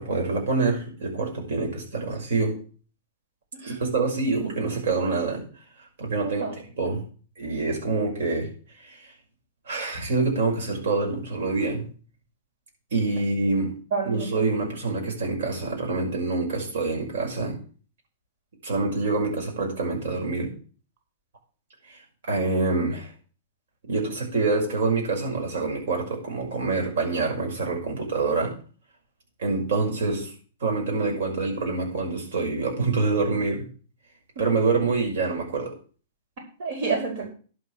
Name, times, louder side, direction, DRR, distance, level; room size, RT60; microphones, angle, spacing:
voice 1, 0.0-2.6 3.7-5.4 6.0-6.4 6.8-7.0 7.4-8.5 8.8-9.0 9.7-11.9 12.9-13.7 14.0-17.6 18.6-20.5 21.9-22.0 22.3-23.1 23.9-28.5 29.4-30.3 30.6-33.6 34.4-35.7, right 3 dB, 75° right, 0 dB, 6.2 m, -26 dB
voice 2, 6.2-6.5 13.9-14.6 36.6-37.3, right 4 dB, 55° right, 1 dB, 4.4 m, -29 dB
11.0 x 5.6 x 8.2 m, 0.40 s
hypercardioid pair, 150°, 0 cm